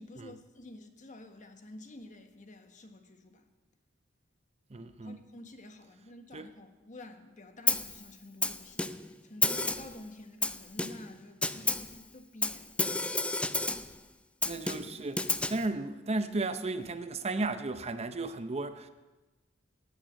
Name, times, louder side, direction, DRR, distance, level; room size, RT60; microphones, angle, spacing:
voice 1, 0.0-3.5 5.0-12.7, left 2 dB, 40° left, 1.4 m, -50 dB
voice 2, 4.7-5.2 6.3-6.5 14.4-18.9, right 2 dB, 30° right, 0.7 m, -34 dB
Snare drum, 7.7-8.0 8.4-9.1 9.4-10.0 10.4-11.1 11.4-11.9 12.4-13.9 14.4-15.7, left 2 dB, 5° left, 0.4 m, -31 dB
18.0 x 8.8 x 7.4 m
head